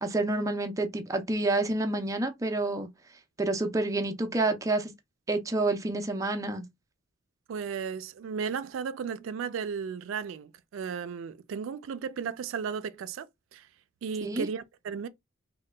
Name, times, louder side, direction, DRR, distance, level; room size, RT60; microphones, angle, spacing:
voice 1, 0.0-2.9 3.4-4.9 5.3-6.7 14.2-14.5, right 2 dB, 15° right, 0.4 m, -28 dB
voice 2, 7.5-13.7 14.0-15.1, right 6 dB, 85° right, 0.3 m, -35 dB
2.8 x 2.2 x 3.2 m
head